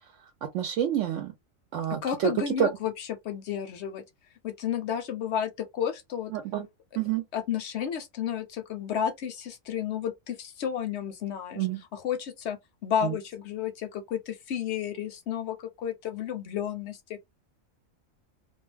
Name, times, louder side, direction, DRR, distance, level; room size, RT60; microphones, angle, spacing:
voice 1, 0.5-1.3 1.7-2.3 2.6-2.7 6.3-6.7 7.0-7.2 11.6-11.8 13.0-13.1, right 10 dB, 70° right, 0.9 m, -28 dB
voice 2, 1.9-4.0 4.4-6.3 7.3-17.2, left 8 dB, 65° left, 0.7 m, -32 dB
2.3 x 2.2 x 3.2 m
omnidirectional pair, 1.4 m